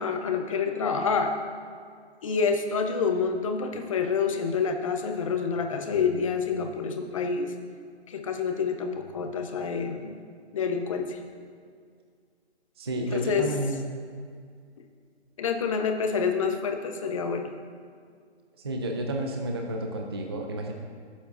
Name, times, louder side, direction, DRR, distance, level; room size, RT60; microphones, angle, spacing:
voice 1, 0.0-1.3 2.2-7.5 8.1-10.2 10.5-11.2 13.1-13.5 15.4-17.5, left 5 dB, 30° left, 5 dB, 0.6 m, -27 dB
voice 2, 12.8-13.8 18.6-20.7, right 1 dB, 25° right, 2 dB, 0.4 m, -31 dB
15.0 x 7.2 x 2.6 m, 2.1 s
hypercardioid pair, 155°, 33 cm